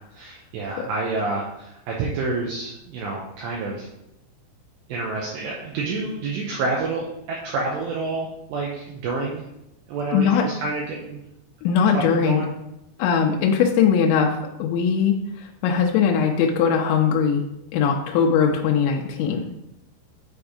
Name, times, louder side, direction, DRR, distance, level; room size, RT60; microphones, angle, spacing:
voice 1, 0.2-3.9 4.9-9.5 9.9-11.2 12.1-12.5, right 3 dB, 75° right, -2 dB, 2.6 m, -28 dB
voice 2, 10.1-10.4 11.6-12.4 13.0-14.3 14.6-15.2 15.6-17.4 17.7-19.5, left 7 dB, 80° left, 2 dB, 2.7 m, -20 dB
8.8 x 3.5 x 4.8 m, 0.85 s
omnidirectional pair, 5.9 m